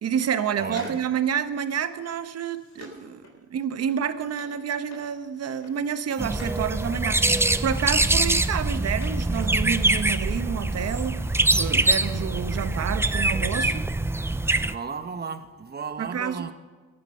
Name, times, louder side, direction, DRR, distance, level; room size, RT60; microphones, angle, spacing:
voice 1, 0.0-13.9 16.0-16.5, right 8 dB, 55° right, 11 dB, 1.1 m, -29 dB
voice 2, 0.6-1.0 6.2-6.3 8.2-8.3 12.4-12.9 14.7-16.5, right 5 dB, 30° right, 9 dB, 1.3 m, -35 dB
sound 1, 0.7-6.6 7.0-9.7 9.9-10.0, left 3 dB, 70° left, 4.6 m, -49 dB
sound 2, 6.2-14.7, right 2 dB, 10° right, 0.5 m, -24 dB
18.0 x 10.0 x 5.7 m, 1.4 s
cardioid pair, 90°, 30 cm